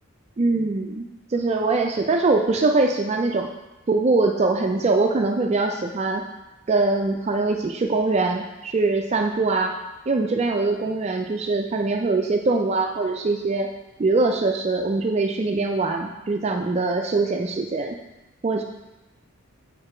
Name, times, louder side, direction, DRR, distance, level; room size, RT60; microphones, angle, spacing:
voice 1, 0.4-1.0 1.3-3.5 3.9-6.2 6.7-9.8 10.1-13.7 14.0-18.0 18.4-18.6, right 3 dB, 30° right, 3 dB, 0.3 m, -22 dB
7.4 x 4.8 x 4.4 m, 1.1 s
head